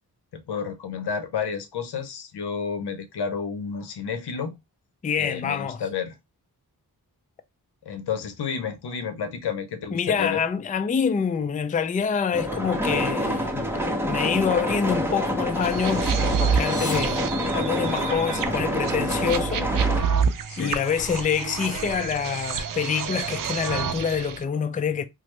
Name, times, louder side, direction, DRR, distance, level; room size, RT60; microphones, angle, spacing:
voice 1, 0.3-4.5 5.2-6.1 7.8-10.4 20.5-20.8, left 6 dB, 85° left, 0.7 m, -31 dB
voice 2, 5.0-5.8 9.9-13.7 14.0-20.1 20.6-25.1, left 6 dB, 20° left, 0.3 m, -26 dB
sound 1, 12.3-20.0, equal, 5° right, 0.7 m, -27 dB
sound 2, 15.6-24.4, right 6 dB, 55° right, 0.5 m, -28 dB
sound 3, 16.4-18.3, left 3 dB, 50° left, 0.8 m, -38 dB
3.1 x 2.0 x 3.0 m
cardioid pair, 50°, 39 cm